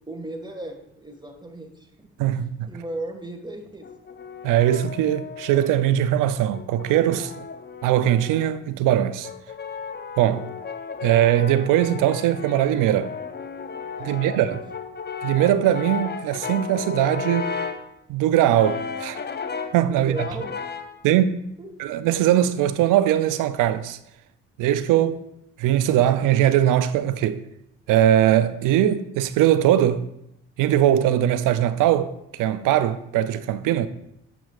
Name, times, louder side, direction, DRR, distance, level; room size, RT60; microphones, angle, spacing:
voice 1, 0.1-2.1 2.7-3.9 14.0-14.6 19.9-20.5 21.6-21.7, right 1 dB, 15° right, 1.8 m, -36 dB
voice 2, 2.2-2.7 4.4-7.4 7.8-9.3 10.2-10.5 11.0-13.1 14.0-14.6 15.2-17.6 18.1-19.2 19.7-20.3 21.0-21.4 21.8-24.0 24.6-25.2 25.6-27.4 27.9-30.1 30.6-33.9, right 11 dB, 75° right, 0.5 m, -20 dB
Brass instrument, 3.8-5.8 6.5-8.6 9.2-17.9 18.5-19.8 20.2-21.0, left 5 dB, 30° left, 0.7 m, -34 dB
8.7 x 7.2 x 2.5 m
supercardioid pair, 55°, 32 cm